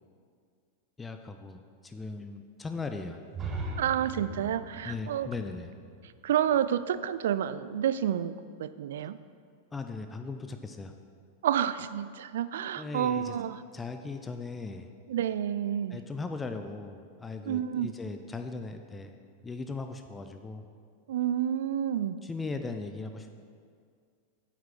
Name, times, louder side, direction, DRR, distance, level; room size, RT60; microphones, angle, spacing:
voice 1, 1.0-3.2 4.8-5.7 9.7-10.9 12.8-13.3 13.7-14.9 15.9-19.2 19.4-20.6 22.2-23.3, left 3 dB, 15° left, 6 dB, 0.6 m, -38 dB
sound 1, 3.3-7.2, right 2 dB, 25° right, 1.2 m, -40 dB
voice 2, 3.8-5.3 6.2-9.2 11.4-13.6 15.1-16.0 17.5-17.9 21.1-22.2, right 10 dB, 60° right, 14 dB, 0.4 m, -29 dB
9.5 x 8.1 x 5.9 m, 2.2 s
figure-of-eight pair, 90°, 0 cm